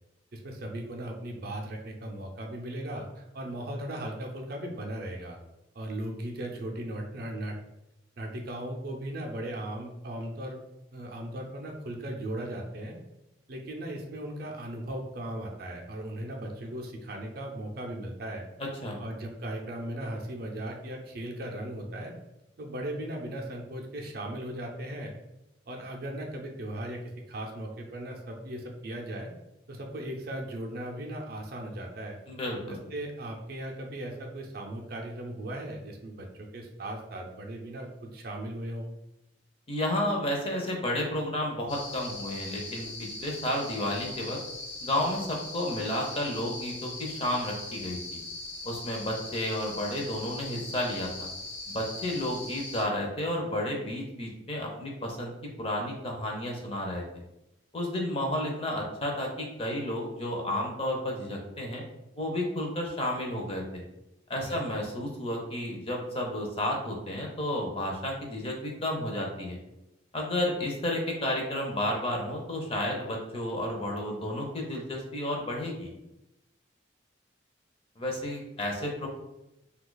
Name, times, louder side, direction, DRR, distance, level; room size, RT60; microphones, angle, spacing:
voice 1, 0.3-5.4 5.7-7.6 8.2-10.6 10.9-13.0 13.5-18.5 19.0-22.1 22.6-25.1 25.7-27.0 27.3-29.3 29.7-32.2 32.7-38.9 64.4-64.6, right 1 dB, 50° right, 1 dB, 0.5 m, -37 dB
voice 2, 18.6-19.0 32.3-32.8 39.7-44.4 44.8-48.2 48.6-51.3 51.7-55.3 55.6-57.2 57.7-61.8 62.2-63.8 64.3-69.6 70.1-75.9 78.0-79.1, left 1 dB, 30° left, 0 dB, 0.6 m, -32 dB
sound 1, 41.7-52.8, left 2 dB, 70° left, 0.9 m, -40 dB
2.7 x 2.3 x 3.8 m, 0.92 s
head